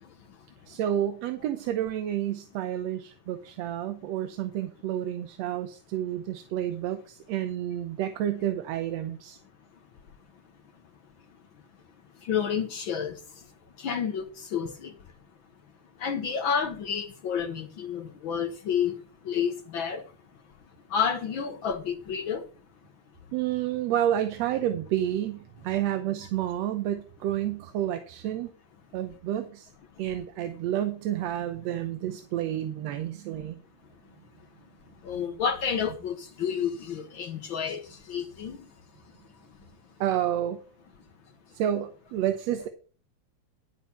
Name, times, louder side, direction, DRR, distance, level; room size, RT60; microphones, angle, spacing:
voice 1, 0.0-0.5 12.1-13.5 13.8-15.1 16.0-20.1 20.9-22.4 35.0-38.7, left 7 dB, 65° left, 1.2 m, -30 dB
voice 2, 0.7-9.4 23.3-28.5 28.9-29.7 30.0-33.6 40.0-40.6 41.5-42.7, right 11 dB, 70° right, 1.9 m, -30 dB
10.5 x 7.3 x 5.6 m
omnidirectional pair, 3.3 m